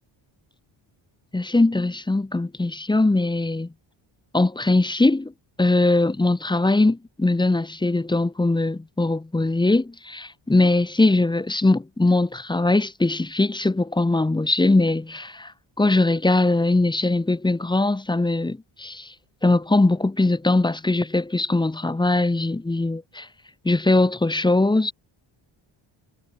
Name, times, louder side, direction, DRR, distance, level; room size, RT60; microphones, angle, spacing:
voice 1, 1.3-3.7 4.3-5.3 5.6-15.5 15.8-19.1 19.4-23.3 23.6-24.9, left 2 dB, 10° left, 0.6 m, -21 dB
cardioid pair, 105°, 49 cm